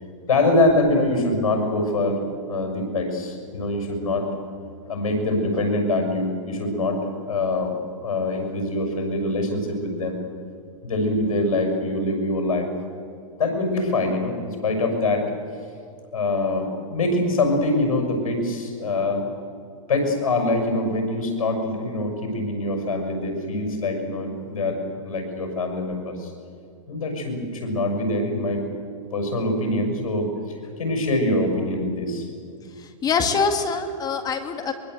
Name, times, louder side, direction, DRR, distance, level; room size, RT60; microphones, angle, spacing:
voice 1, 0.3-2.2 2.5-4.3 4.8-7.7 8.0-10.2 10.8-12.7 13.4-15.2 16.1-19.2 19.9-26.3 26.9-28.6 29.1-30.3 30.8-32.3, left 2 dB, 90° left, 4 dB, 6.5 m, -24 dB
voice 2, 33.0-34.7, left 5 dB, 20° left, 6 dB, 2.0 m, -24 dB
24.0 x 23.5 x 8.0 m, 2.3 s
hypercardioid pair, 130°, 17 cm